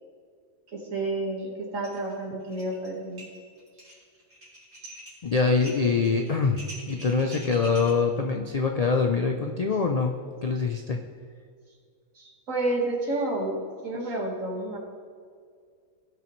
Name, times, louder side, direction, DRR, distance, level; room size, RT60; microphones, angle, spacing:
voice 1, 0.7-3.3 7.3-7.4 12.2-14.8, right 2 dB, 65° right, 0 dB, 2.0 m, -30 dB
sound 1, 1.8-2.1 2.4-2.9 3.2-7.9, right 1 dB, 50° right, 3.2 m, -45 dB
voice 2, 5.2-11.0, left 4 dB, 75° left, 3 dB, 0.3 m, -24 dB
17.0 x 6.0 x 3.1 m, 2.1 s
omnidirectional pair, 1.4 m